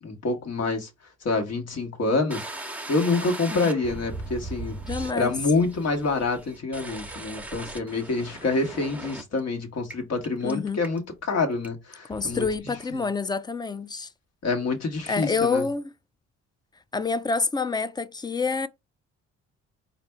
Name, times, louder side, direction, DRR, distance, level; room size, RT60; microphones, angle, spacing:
voice 1, 0.0-0.9 1.2-4.7 5.1-13.0 14.4-15.6, left 3 dB, 55° left, 1.3 m, -27 dB
sound 1, 2.3-9.4 9.9-10.0 10.2-10.5 10.8-11.3 11.6-11.7 12.1-12.6, right 2 dB, 5° right, 0.8 m, -38 dB
voice 2, 4.9-5.3 10.4-10.8 12.1-14.1 15.1-15.9 16.9-18.7, left 4 dB, 15° left, 0.3 m, -27 dB
4.2 x 2.5 x 3.4 m
cardioid pair, 90°, 30 cm